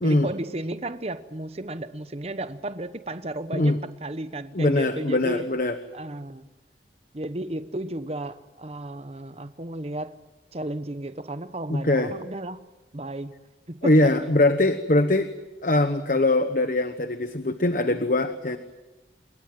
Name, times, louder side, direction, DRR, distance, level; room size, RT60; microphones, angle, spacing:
voice 1, 0.0-5.5 5.9-6.5 7.1-10.2 10.5-12.6 12.9-13.3 13.7-14.3, right 1 dB, 35° right, 1.0 m, -33 dB
voice 2, 4.5-5.8 11.7-12.1 13.8-15.3 15.6-18.6, left 2 dB, 50° left, 1.1 m, -22 dB
27.5 x 22.0 x 7.7 m
head